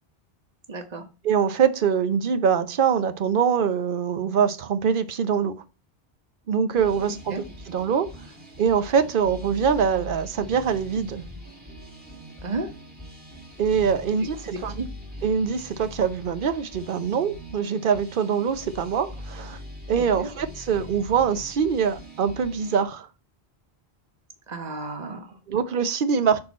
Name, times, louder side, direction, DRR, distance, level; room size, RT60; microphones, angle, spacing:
voice 1, 0.7-1.0 7.3-7.4 12.4-12.7 14.5-14.9 19.9-20.3 24.5-25.4, right 3 dB, 40° right, 1.2 m, -33 dB
voice 2, 1.2-5.5 6.5-7.3 7.7-8.1 8.6-11.2 13.6-14.7 15.2-19.6 19.9-23.1 25.5-26.4, right 7 dB, 55° right, 0.8 m, -23 dB
sound 1, 6.7-22.8, left 1 dB, 10° right, 1.7 m, -42 dB
6.4 x 4.4 x 4.1 m
omnidirectional pair, 1.1 m